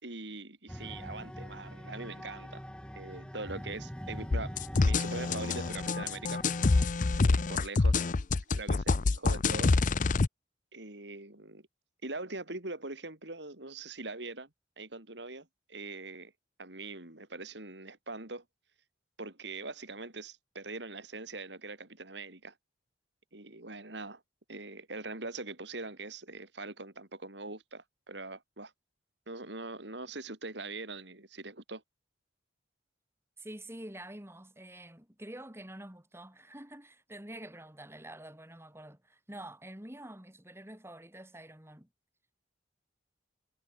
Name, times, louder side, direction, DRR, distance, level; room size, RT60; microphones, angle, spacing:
voice 1, 0.0-2.6 3.0-6.4 7.2-8.0 8.5-9.8 10.7-11.7 12.0-14.5 14.8-16.3 16.6-18.4 19.2-22.5 23.3-24.2 24.5-28.7 29.3-31.8, right 3 dB, 70° right, 3.7 m, -42 dB
sound 1, 0.7-6.8, equal, 5° left, 3.0 m, -44 dB
sound 2, 4.3-10.3, left 3 dB, 45° left, 0.5 m, -27 dB
voice 2, 33.4-41.9, right 1 dB, 15° right, 3.7 m, -47 dB
head